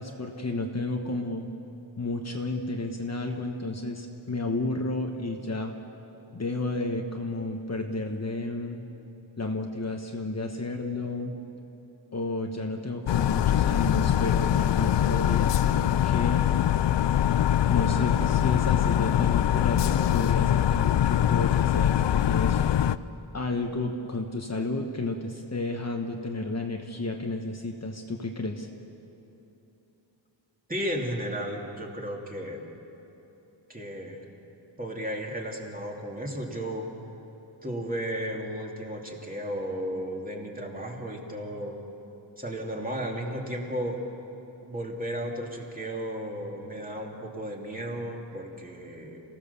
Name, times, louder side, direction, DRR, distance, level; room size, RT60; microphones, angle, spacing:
voice 1, 0.0-1.5 2.0-5.7 6.3-8.8 9.4-11.4 12.1-16.5 17.6-22.6 23.3-28.7, left 2 dB, 35° left, 2 dB, 1.2 m, -32 dB
sound 1, 13.1-23.0, left 11 dB, 65° left, 0.6 m, -23 dB
voice 2, 30.7-32.6 33.7-34.2 34.8-36.9 37.6-41.8 42.4-44.0 44.6-49.2, equal, 20° right, -1 dB, 2.7 m, -34 dB
29.5 x 16.5 x 7.0 m, 2.9 s
wide cardioid pair, 145°, 46 cm